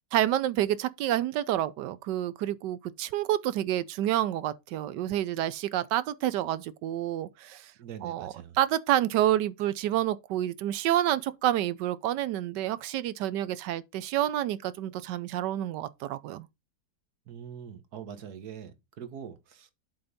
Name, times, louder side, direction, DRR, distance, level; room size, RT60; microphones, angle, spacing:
voice 1, 0.1-7.7 8.0-16.5, right 12 dB, 80° right, 1.2 m, -28 dB
voice 2, 7.8-8.6 17.3-19.7, right 8 dB, 65° right, 1.6 m, -43 dB
7.8 x 3.9 x 5.2 m
omnidirectional pair, 1.9 m